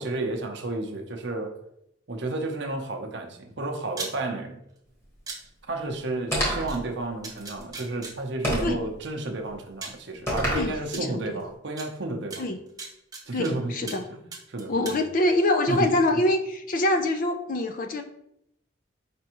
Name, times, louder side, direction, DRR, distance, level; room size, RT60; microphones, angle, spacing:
voice 1, 0.0-1.5 2.1-4.6 5.7-12.4 13.3-14.2 14.5-15.0 15.7-15.9, right 2 dB, 60° right, 2 dB, 0.7 m, -32 dB
sound 1, 3.9-4.1 5.3-5.4 6.7-6.8 7.2-8.1 9.2-9.3 9.8-10.0 10.9-11.0 11.8-11.9 12.3-13.5 13.9-14.0 14.3-15.0, right 3 dB, 20° right, 0.7 m, -37 dB
sound 2, 6.3-6.8 8.4-8.8 10.3-10.7, equal, 15° left, 1.3 m, -26 dB
voice 2, 10.5-11.4 12.4-12.6 13.3-14.1 14.7-18.0, left 1 dB, 45° left, 7 dB, 0.4 m, -25 dB
5.2 x 3.4 x 2.9 m, 0.77 s
head